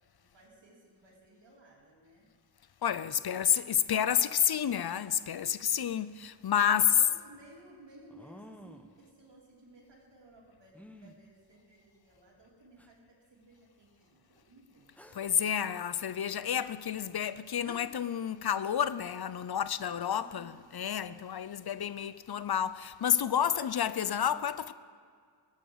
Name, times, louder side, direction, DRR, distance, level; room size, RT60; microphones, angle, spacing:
voice 1, 0.2-2.3 3.1-3.4 6.7-14.9 19.8-20.5, right 1 dB, 85° right, 3.5 m, -57 dB
voice 2, 2.8-6.9 15.1-24.7, left 9 dB, 65° left, 0.6 m, -30 dB
sound 1, 8.1-9.0 10.7-11.2 12.1-12.2 12.8-12.9 15.0-15.3 17.3-17.4 17.6-18.1, equal, 5° left, 0.9 m, -51 dB
19.0 x 8.9 x 5.6 m
wide cardioid pair, 70°, 42 cm